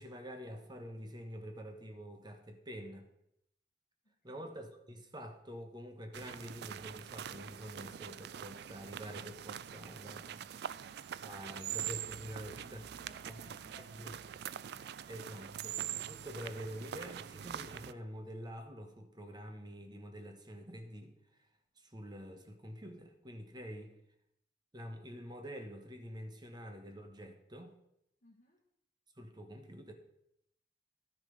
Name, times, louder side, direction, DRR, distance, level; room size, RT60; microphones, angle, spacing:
voice 1, 0.0-3.1 4.2-12.8 13.3-13.5 14.0-14.1 15.1-21.1 21.8-24.0 24.7-27.8 29.2-29.9, equal, 25° right, 5 dB, 1.2 m, -47 dB
voice 2, 4.0-4.6 12.4-15.2 28.2-28.6, equal, 45° left, -4 dB, 1.8 m, -62 dB
sound 1, 6.1-17.9, right 10 dB, 65° right, 0.3 m, -44 dB
11.5 x 6.7 x 5.2 m, 0.78 s
head